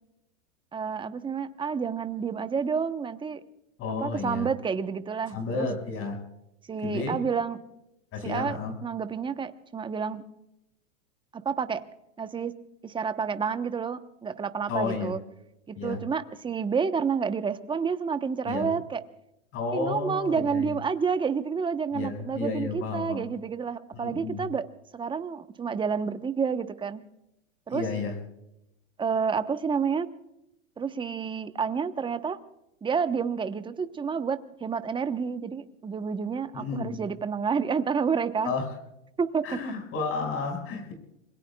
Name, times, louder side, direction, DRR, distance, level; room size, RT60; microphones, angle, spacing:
voice 1, 0.7-3.4 4.0-5.7 6.7-7.6 8.2-10.2 11.3-11.8 12.2-12.5 12.8-15.2 15.7-19.0 19.7-24.7 24.9-27.0 27.7-27.9 29.0-30.1 30.8-32.4 32.8-38.5 39.2-39.6, right 6 dB, 10° right, 10 dB, 1.0 m, -29 dB
voice 2, 3.8-4.5 5.3-6.2 6.8-7.2 8.1-8.7 14.7-15.1 15.8-16.0 18.5-18.7 19.5-20.7 21.9-23.3 23.9-24.4 27.7-28.2 36.5-37.0 38.4-38.7 39.4-40.9, left 4 dB, 35° left, 3 dB, 5.6 m, -32 dB
28.5 x 21.5 x 2.3 m, 0.85 s
hypercardioid pair, 125°, 39 cm